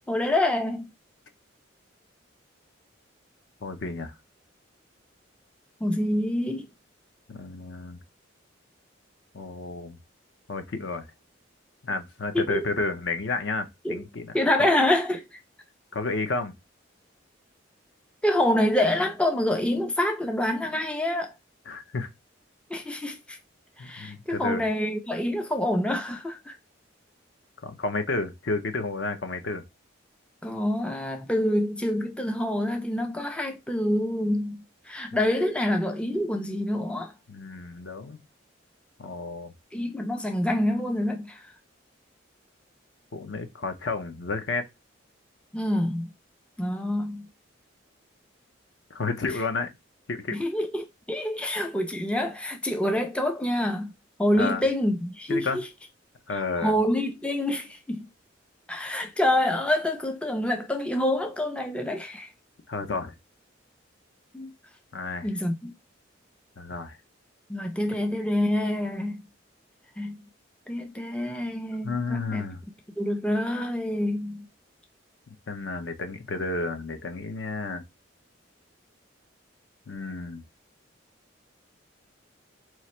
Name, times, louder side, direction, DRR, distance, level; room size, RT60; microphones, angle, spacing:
voice 1, 0.1-0.9 5.8-6.7 12.3-12.7 13.8-14.0 14.3-15.4 18.2-21.3 22.7-23.4 23.8-26.6 30.4-37.1 39.7-41.4 45.5-46.1 46.6-47.3 50.3-53.9 54.2-55.5 56.6-58.1 58.7-62.3 64.3-64.5 65.2-65.7 67.5-69.2 70.0-70.2 70.7-72.4 73.0-74.5, left 1 dB, 5° left, 0.3 m, -26 dB
voice 2, 3.6-4.1 7.3-8.0 9.3-10.0 10.5-11.1 11.8-14.3 14.6-14.7 15.9-16.5 21.7-22.1 23.8-24.6 27.6-29.6 37.3-38.2 39.0-39.5 43.1-44.7 48.9-49.7 50.1-50.4 54.4-54.6 55.3-55.6 56.3-56.8 62.7-63.1 64.9-65.3 66.6-67.0 71.8-72.6 75.5-77.8 79.9-80.4, left 3 dB, 65° left, 0.6 m, -31 dB
3.1 x 2.4 x 4.2 m
head